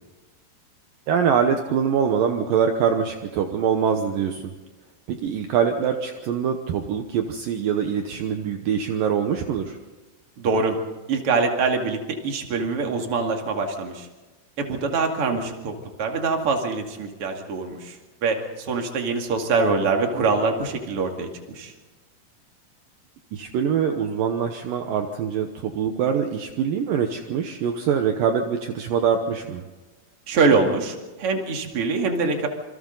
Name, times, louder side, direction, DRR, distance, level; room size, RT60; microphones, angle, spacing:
voice 1, 1.1-4.4 5.1-9.8 23.3-29.6, right 7 dB, 75° right, 5 dB, 2.0 m, -24 dB
voice 2, 10.4-10.8 11.1-12.0 12.2-14.1 14.6-18.0 18.2-21.7 30.3-32.5, right 4 dB, 40° right, 3 dB, 2.2 m, -24 dB
27.0 x 25.5 x 4.0 m, 1.2 s
omnidirectional pair, 5.5 m